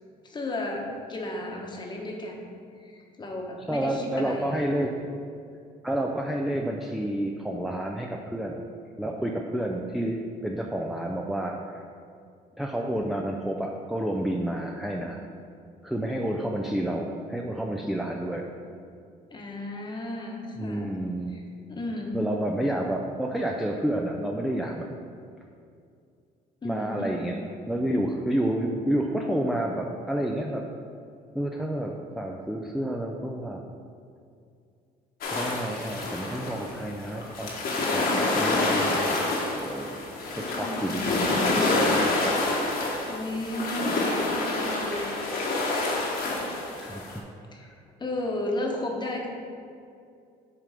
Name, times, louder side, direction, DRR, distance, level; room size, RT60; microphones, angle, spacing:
voice 1, 0.2-2.5 2.8-4.5 19.3-20.9 21.3-21.4 21.7-22.2 26.6-27.5 40.6-41.8 43.1-45.2 46.3-46.4 47.5-47.7 48.0-49.3, left 1 dB, 25° left, 0 dB, 1.1 m, -34 dB
voice 2, 3.7-4.9 5.8-8.6 9.0-11.8 12.6-15.2 15.8-18.5 20.6-21.4 22.1-24.9 26.6-27.4 27.7-30.6 31.3-33.6 35.3-37.5 37.9-39.3 39.6-40.0 40.3-41.4 41.7-42.6 46.8-47.2, right 1 dB, ahead, 0 dB, 0.4 m, -30 dB
sound 1, 35.2-47.2, left 2 dB, 65° left, 1.3 m, -27 dB
7.4 x 3.4 x 5.0 m, 2.4 s
cardioid pair, 110°, 17 cm